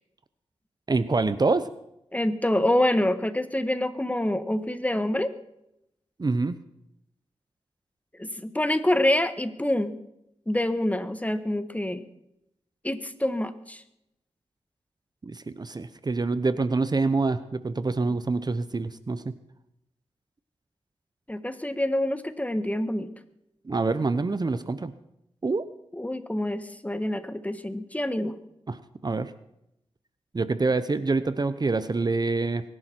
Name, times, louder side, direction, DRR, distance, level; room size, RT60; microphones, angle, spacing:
voice 1, 0.9-1.6 6.2-6.5 15.2-19.2 23.7-24.9 25.4-25.6 28.7-28.8 29.0-29.3 30.3-32.6, right 3 dB, 40° right, 13 dB, 0.8 m, -26 dB
voice 2, 2.1-5.3 8.2-9.9 10.5-12.0 12.8-13.8 21.3-23.1 25.9-28.4, left 1 dB, 15° left, 11 dB, 1.4 m, -26 dB
23.5 x 11.0 x 4.6 m, 0.82 s
cardioid pair, 55°, 11 cm